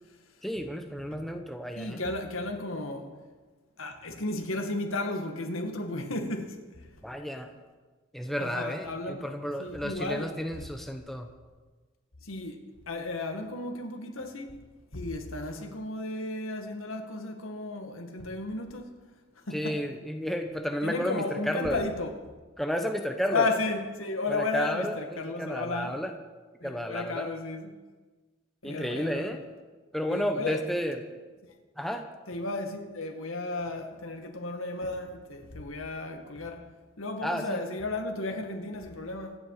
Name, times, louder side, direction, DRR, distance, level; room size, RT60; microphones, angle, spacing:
voice 1, 0.4-2.1 7.0-7.5 8.1-11.3 19.5-21.8 22.6-23.5 24.3-26.1 26.6-27.3 28.6-29.4 29.9-31.0 31.8-32.0 37.2-37.6, equal, ahead, 1.0 m, -32 dB
voice 2, 1.8-3.1 3.8-6.5 8.4-9.2 9.6-10.3 12.2-12.6 12.9-14.5 14.9-18.9 19.5-19.8 20.8-22.1 23.3-26.0 26.6-27.7 28.6-29.3 30.1-30.6 32.3-36.7 37.0-39.4, left 2 dB, 90° left, 2.1 m, -33 dB
24.5 x 10.0 x 5.0 m
head